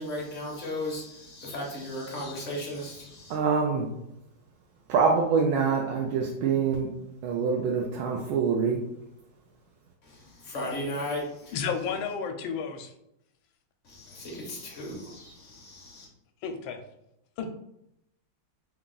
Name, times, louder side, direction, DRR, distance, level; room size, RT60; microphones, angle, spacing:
voice 1, 0.0-3.4 10.0-11.6 13.8-16.1, left 1 dB, 50° left, -2 dB, 1.0 m, -36 dB
voice 2, 3.3-3.9 4.9-6.9 7.2-8.8, right 5 dB, 90° right, -1 dB, 1.4 m, -25 dB
voice 3, 11.5-12.9 16.4-16.8 17.4-17.5, left 6 dB, 80° left, 6 dB, 1.3 m, -32 dB
3.7 x 2.3 x 3.8 m, 0.82 s
omnidirectional pair, 2.2 m